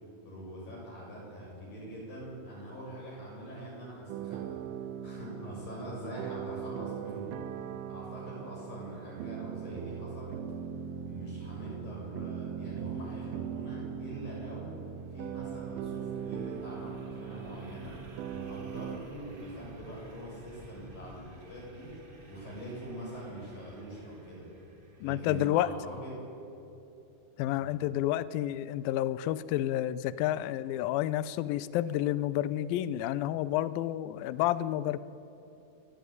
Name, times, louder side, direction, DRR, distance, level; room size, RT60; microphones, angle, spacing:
voice 1, 0.3-4.6 5.0-10.4 11.0-14.8 15.1-18.0 18.3-21.9 22.3-24.5 25.0-26.1 27.6-27.8, right 1 dB, 65° left, -4 dB, 9.5 m, -43 dB
sound 1, 4.1-19.0, right 8 dB, 80° right, 2.5 m, -40 dB
sound 2, 14.5-25.8, right 1 dB, 30° right, 1.0 m, -53 dB
voice 2, 25.0-25.7 27.4-35.0, left 13 dB, 80° left, 16 dB, 2.3 m, -30 dB
28.5 x 12.5 x 9.4 m, 2.9 s
omnidirectional pair, 4.4 m